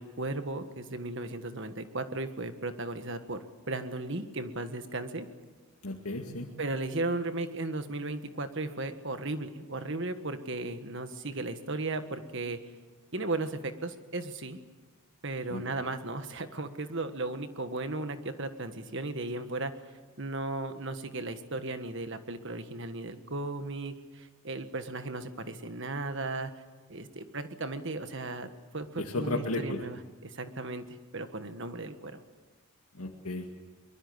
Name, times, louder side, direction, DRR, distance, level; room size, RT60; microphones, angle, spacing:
voice 1, 0.0-3.4 3.7-5.2 6.6-12.6 13.1-14.6 15.2-19.7 20.2-26.5 26.9-28.5 28.7-30.8 31.1-32.2, right 2 dB, 55° right, 9 dB, 1.6 m, -35 dB
voice 2, 5.8-6.5 15.5-15.6 29.0-29.8 32.9-33.5, left 2 dB, 85° left, 0 dB, 2.2 m, -34 dB
23.5 x 22.0 x 8.1 m, 1.3 s
head